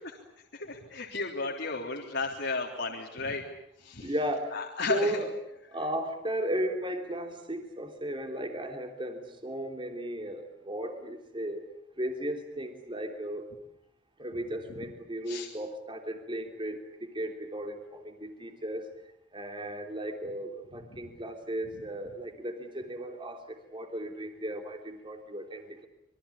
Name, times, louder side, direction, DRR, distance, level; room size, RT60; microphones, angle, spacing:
voice 1, 0.5-3.4 3.8-4.1 4.5-5.2 15.3-15.5, left 3 dB, 60° left, -1 dB, 3.4 m, -33 dB
voice 2, 4.0-4.6 4.9-5.3 5.7-11.6 12.0-13.4 14.2-18.8 19.3-25.9, right 1 dB, 25° right, 5 dB, 3.2 m, -35 dB
26.5 x 23.5 x 8.7 m, 0.76 s
head